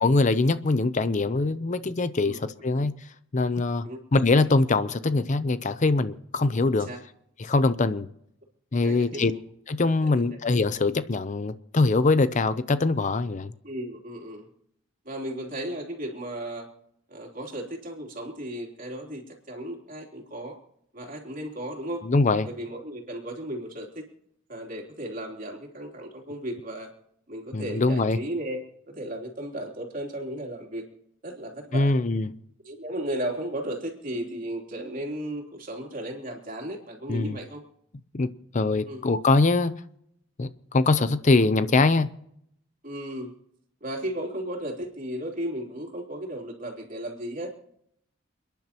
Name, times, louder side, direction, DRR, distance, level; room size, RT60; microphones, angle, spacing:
voice 1, 0.0-2.9 3.3-6.9 7.4-8.1 8.7-9.3 9.7-13.5 22.0-22.5 27.5-28.2 31.7-32.3 37.1-37.4 38.1-39.7 40.4-42.1, left 3 dB, 40° left, 13 dB, 0.6 m, -23 dB
voice 2, 8.8-9.4 10.0-10.1 13.6-14.5 15.0-16.7 17.1-20.5 20.9-22.0 22.4-24.1 24.5-26.9 27.3-28.6 28.9-30.8 31.2-31.9 32.6-37.6 38.9-39.0 42.8-43.3 43.8-47.5, right 1 dB, 45° right, 1 dB, 3.2 m, -35 dB
29.0 x 10.5 x 2.9 m, 0.72 s
head